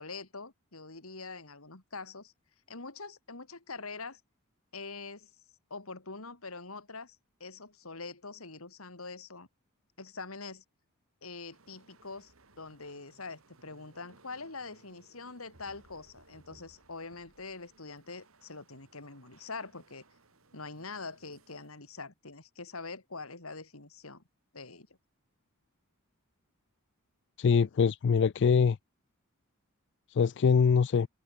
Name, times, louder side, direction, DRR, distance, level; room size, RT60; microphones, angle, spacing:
voice 1, 0.0-2.3 2.7-4.2 4.7-5.3 5.7-9.5 10.0-10.6 11.2-20.0 20.5-24.2 24.5-24.9 27.5-27.7, left 3 dB, 85° left, 3.8 m, -44 dB
sound 1, 11.5-22.0, right 2 dB, 75° right, 3.2 m, -62 dB
voice 2, 27.4-28.8 30.1-31.1, left 6 dB, 55° left, 0.4 m, -23 dB
head